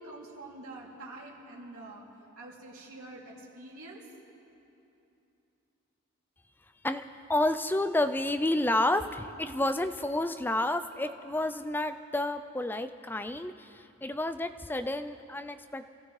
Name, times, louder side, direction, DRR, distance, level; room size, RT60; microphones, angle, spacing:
voice 1, 0.0-2.0 2.4-4.0, right 2 dB, 80° right, -4 dB, 2.8 m, -46 dB
voice 2, 7.3-15.9, left 1 dB, 10° left, 9 dB, 0.3 m, -30 dB
26.5 x 14.5 x 3.2 m, 2.8 s
head